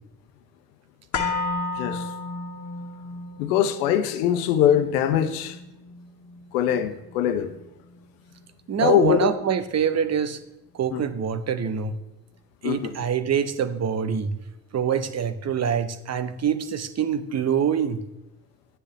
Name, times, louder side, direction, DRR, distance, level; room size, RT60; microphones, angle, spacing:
sound 1, 1.1-9.2 9.5-9.6, left 3 dB, 35° left, 1.7 m, -34 dB
voice 1, 1.7-2.1 3.4-5.6 6.5-7.5 8.8-9.3 10.9-11.0 12.6-13.0, left 10 dB, 70° left, 1.0 m, -22 dB
voice 2, 8.7-10.4 10.7-12.0 12.6-14.4 14.7-18.0, right 7 dB, 35° right, 0.9 m, -25 dB
12.0 x 9.8 x 3.3 m
figure-of-eight pair, 55°, 46 cm